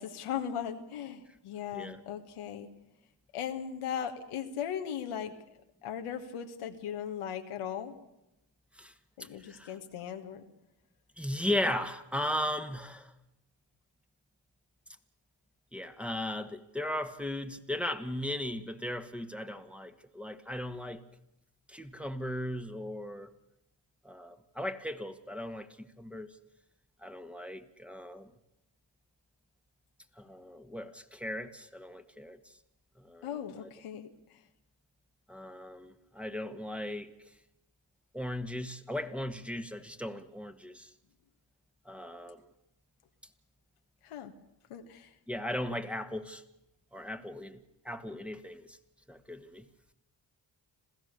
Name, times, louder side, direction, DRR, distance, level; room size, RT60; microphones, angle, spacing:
voice 1, 0.0-2.7 3.3-5.3 5.8-8.0 9.2-10.4 33.2-34.4 44.0-44.3 44.7-45.1, left 9 dB, 85° left, 6 dB, 1.7 m, -38 dB
voice 2, 9.2-9.7 11.2-13.1 15.7-21.0 21.7-23.3 24.0-26.4 27.0-28.3 30.2-32.4 33.0-33.3 35.3-37.1 38.1-40.9 41.8-42.4 45.3-46.4 46.9-48.8 49.1-49.7, left 1 dB, ahead, 7 dB, 1.7 m, -37 dB
27.0 x 15.5 x 6.7 m, 0.86 s
supercardioid pair, 50°, 50 cm